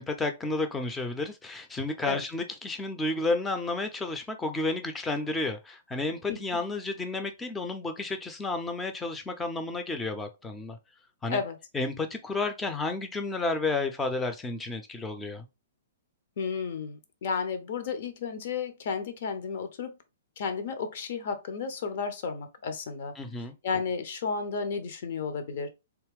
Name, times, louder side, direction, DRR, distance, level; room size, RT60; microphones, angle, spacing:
voice 1, 0.0-10.8 11.2-11.4 11.7-15.5 23.2-23.5, left 3 dB, 10° left, 0.6 m, -31 dB
voice 2, 6.3-6.6 11.3-11.6 16.4-20.0 20.4-23.1 23.6-25.7, left 5 dB, 50° left, 0.8 m, -33 dB
3.5 x 2.9 x 3.3 m
figure-of-eight pair, 115°, 0 cm